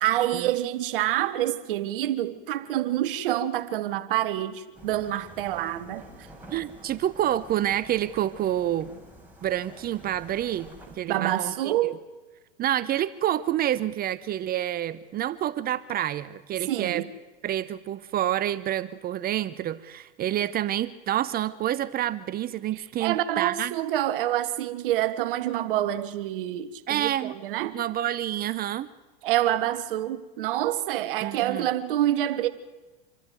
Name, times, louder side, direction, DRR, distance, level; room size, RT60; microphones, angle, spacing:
voice 1, 0.0-6.1 11.1-12.0 16.7-17.0 23.0-27.8 29.2-32.5, right 13 dB, 65° right, 1.4 m, -27 dB
sound 1, 4.7-11.0, right 1 dB, 5° right, 4.8 m, -48 dB
voice 2, 6.5-9.0 9.4-10.7 11.0-12.0 12.6-17.0 17.4-23.7 26.9-27.4 27.7-28.9 31.2-31.7, right 12 dB, 30° right, 0.9 m, -28 dB
26.5 x 12.5 x 9.2 m
hypercardioid pair, 100°, 29 cm